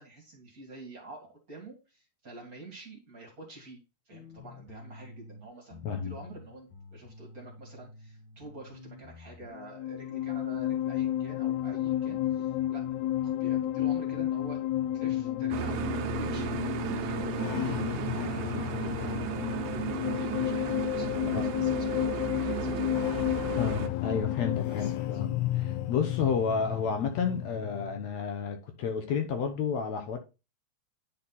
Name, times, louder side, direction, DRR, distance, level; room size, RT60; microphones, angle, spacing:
voice 1, 0.0-3.8 4.1-12.8 13.2-15.8 16.2-17.8 18.1-19.3 19.6-22.9 24.7-25.2, right 2 dB, 35° right, 2.3 m, -47 dB
sound 1, 4.1-5.4 5.7-9.5, left 3 dB, 45° left, 1.5 m, -49 dB
sound 2, 9.5-28.0, left 13 dB, 90° left, 2.1 m, -31 dB
sound 3, 15.5-23.9, right 13 dB, 90° right, 2.1 m, -35 dB
voice 2, 23.5-30.2, left 6 dB, 70° left, 2.1 m, -31 dB
9.9 x 4.2 x 4.0 m
omnidirectional pair, 3.3 m